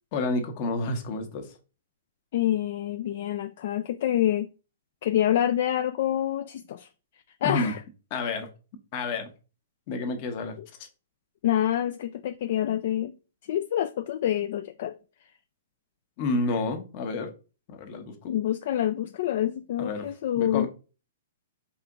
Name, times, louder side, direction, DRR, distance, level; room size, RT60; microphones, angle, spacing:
voice 1, 0.1-1.5 7.4-7.7 8.1-8.5 8.9-9.3 9.9-10.9 16.2-17.3 17.7-18.3 19.8-20.1 20.4-20.7, left 3 dB, 35° left, 0.9 m, -30 dB
voice 2, 2.3-4.5 5.0-6.9 7.4-7.8 10.6-10.7 11.4-13.1 13.5-14.9 18.3-20.7, left 11 dB, 50° left, 0.3 m, -27 dB
4.8 x 2.9 x 3.6 m
hypercardioid pair, 160°, 0 cm